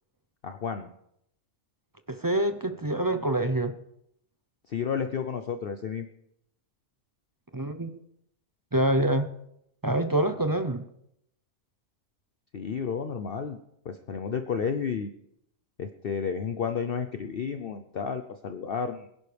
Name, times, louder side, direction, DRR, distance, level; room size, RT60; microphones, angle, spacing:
voice 1, 0.4-0.9 4.7-6.1 12.5-13.6 13.8-15.1 15.8-19.1, left 6 dB, 50° left, 8 dB, 0.8 m, -31 dB
voice 2, 2.1-3.8 7.5-7.9 8.7-9.3 9.8-10.9, right 1 dB, 25° right, 8 dB, 0.4 m, -26 dB
21.5 x 10.5 x 3.4 m, 0.76 s
omnidirectional pair, 1.4 m